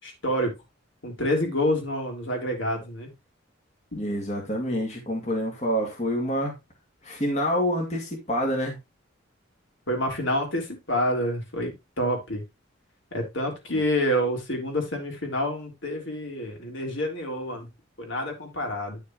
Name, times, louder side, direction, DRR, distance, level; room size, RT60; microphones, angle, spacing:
voice 1, 0.0-0.5 1.0-3.1 3.9-4.1 9.9-12.4 13.1-17.7 18.0-19.0, equal, 65° left, 3.6 m, -28 dB
voice 2, 3.9-6.5 7.0-8.8, equal, 35° left, 2.4 m, -27 dB
10.5 x 6.6 x 3.1 m
head